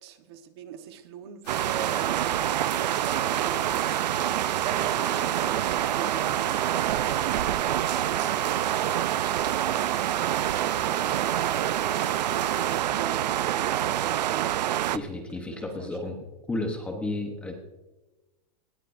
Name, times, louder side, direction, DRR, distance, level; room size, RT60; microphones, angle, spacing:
voice 1, 0.0-14.5 15.3-16.1, right 8 dB, 40° right, 7 dB, 1.2 m, -42 dB
sound 1, 1.4-12.8, left 8 dB, 70° left, 3.1 m, -46 dB
sound 2, 1.5-15.0, right 12 dB, 90° right, 0.6 m, -26 dB
voice 2, 14.9-16.2 16.5-17.6, left 2 dB, 5° left, 3 dB, 0.9 m, -32 dB
22.0 x 18.5 x 2.6 m, 1.1 s
supercardioid pair, 175°, 21 cm